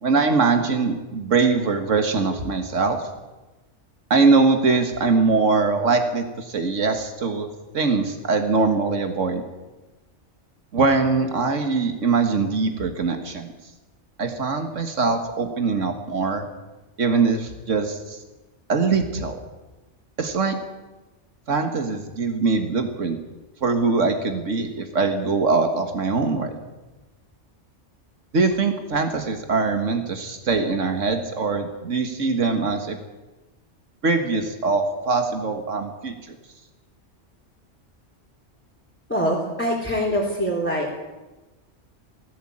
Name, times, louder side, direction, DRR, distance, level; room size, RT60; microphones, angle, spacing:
voice 1, 0.0-3.0 4.1-7.5 7.7-9.4 10.7-13.5 14.2-16.5 17.0-18.2 18.7-19.4 20.2-20.6 21.5-23.2 23.6-26.6 28.3-33.0 34.0-36.4, right 4 dB, 85° right, 5 dB, 2.0 m, -22 dB
voice 2, 39.1-41.0, equal, 10° left, -4 dB, 3.7 m, -24 dB
18.5 x 16.5 x 8.7 m, 1.1 s
omnidirectional pair, 1.2 m